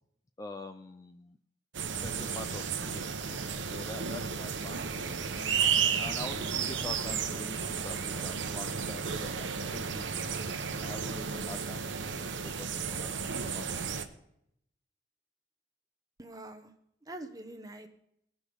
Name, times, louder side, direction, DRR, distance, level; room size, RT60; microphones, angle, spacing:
voice 1, 0.4-1.4 1.9-3.1 3.7-5.5 6.0-10.3 10.8-14.0, left 2 dB, 20° left, 8 dB, 0.3 m, -45 dB
sound 1, 1.7-14.1, right 6 dB, 80° right, 0.9 m, -33 dB
sound 2, 2.5-8.8, right 1 dB, ahead, 1.6 m, -54 dB
voice 2, 16.2-16.7 17.1-17.9, right 1 dB, 20° right, 7 dB, 0.9 m, -44 dB
18.5 x 6.2 x 5.1 m, 0.75 s
head